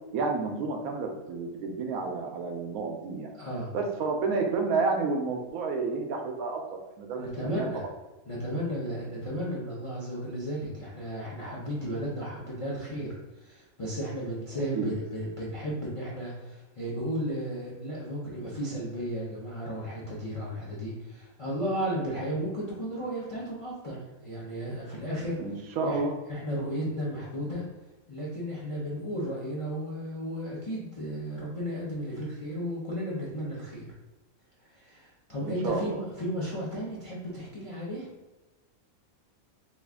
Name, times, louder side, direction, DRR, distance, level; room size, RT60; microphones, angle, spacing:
voice 1, 0.1-3.3 3.7-6.6 7.0-7.7 14.5-14.9 25.4-26.1 35.4-36.0, right 4 dB, 80° right, 2 dB, 1.0 m, -30 dB
voice 2, 3.3-3.7 7.2-7.9 8.3-25.4 25.8-27.6 28.1-33.9 34.6-38.1, equal, 45° left, -6 dB, 0.4 m, -34 dB
3.1 x 2.4 x 3.4 m, 1.1 s
omnidirectional pair, 1.5 m